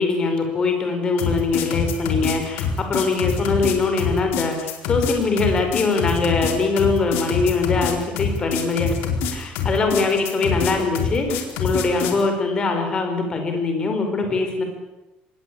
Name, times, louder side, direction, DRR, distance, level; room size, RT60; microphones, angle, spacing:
voice 1, 0.0-8.9 9.3-14.6, left 4 dB, 25° left, 4 dB, 5.0 m, -22 dB
sound 1, 1.2-12.2, left 6 dB, 85° left, 4.5 m, -25 dB
26.0 x 21.0 x 8.8 m, 1.0 s
cardioid pair, 175°, 3 cm